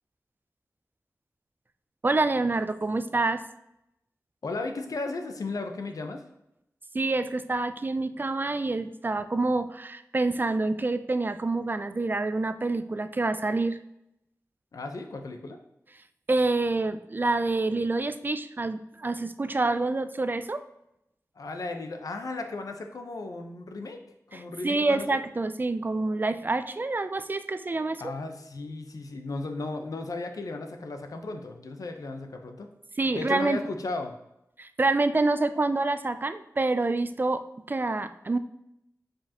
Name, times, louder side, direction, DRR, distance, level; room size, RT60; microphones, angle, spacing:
voice 1, 2.0-3.4 6.9-13.8 16.3-20.6 24.3-28.1 33.0-33.6 34.6-37.4 37.7-38.4, right 3 dB, 35° right, 11 dB, 0.3 m, -27 dB
voice 2, 4.4-6.2 14.7-15.6 21.3-24.0 24.3-25.2 28.0-32.7 33.1-34.1, left 3 dB, 75° left, 5 dB, 0.7 m, -35 dB
7.3 x 5.1 x 2.9 m, 0.83 s
wide cardioid pair, 95°, 6 cm